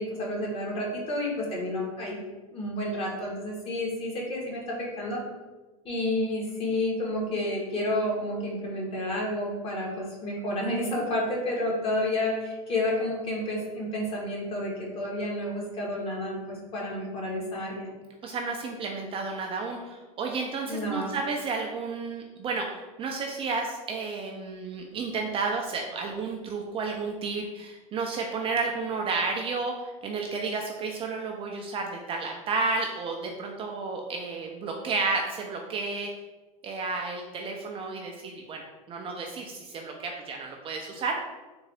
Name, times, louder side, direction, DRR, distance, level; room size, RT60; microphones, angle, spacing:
voice 1, 0.0-2.2 2.5-5.2 5.8-17.9 20.7-21.1, left 1 dB, 30° left, -2 dB, 1.4 m, -30 dB
voice 2, 18.2-36.1 36.6-41.1, right 4 dB, 30° right, 1 dB, 0.5 m, -32 dB
3.8 x 2.6 x 3.3 m, 1.2 s
hypercardioid pair, 110°, 18 cm